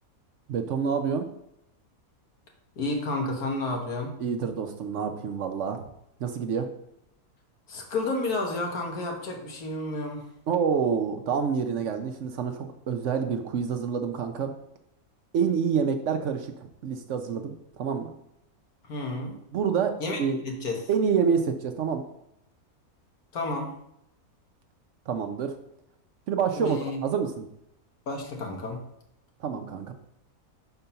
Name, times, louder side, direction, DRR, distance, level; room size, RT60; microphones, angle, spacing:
voice 1, 0.5-1.3 4.2-5.9 6.2-6.7 10.5-14.5 15.3-18.1 19.5-20.4 20.9-22.0 25.1-25.6 26.3-27.5 29.4-29.9, right 6 dB, 60° right, 6 dB, 0.9 m, -27 dB
voice 2, 2.8-4.1 7.7-10.3 18.8-19.4 20.0-20.9 23.3-23.7 26.5-27.0 28.1-28.8, left 2 dB, 85° left, 1 dB, 1.8 m, -31 dB
5.4 x 4.5 x 5.7 m, 0.79 s
omnidirectional pair, 1.5 m